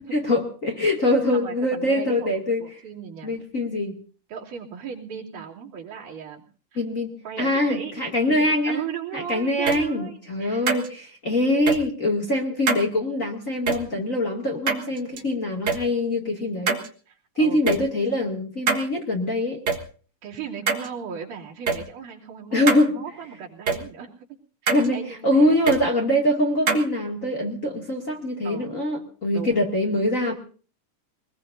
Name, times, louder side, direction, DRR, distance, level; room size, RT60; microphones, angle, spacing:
voice 1, 0.1-2.6 3.2-4.0 6.7-8.8 9.1-16.8 17.4-19.6 22.5-23.0 24.7-30.3, left 1 dB, 25° left, 0 dB, 2.3 m, -23 dB
voice 2, 1.3-3.3 4.3-6.4 6.7-6.8 7.2-7.9 8.3-10.6 17.1-17.8 20.2-24.3 24.6-25.7 28.4-28.7 29.3-29.6, right 7 dB, 70° right, -4 dB, 4.5 m, -37 dB
sound 1, 9.7-9.8 10.7-10.9 11.7-11.8 12.7-12.8 13.7-13.8 14.7-15.2 15.7-15.8 16.7-16.9 17.7-17.8 18.7-18.8 19.7-19.8 20.7-20.9 21.7-21.8 22.7-22.8 23.7-23.8 24.7-24.9 25.7-25.8 26.7-26.8, right 5 dB, 45° right, 1.6 m, -23 dB
24.0 x 20.5 x 2.7 m, 0.39 s
omnidirectional pair, 3.7 m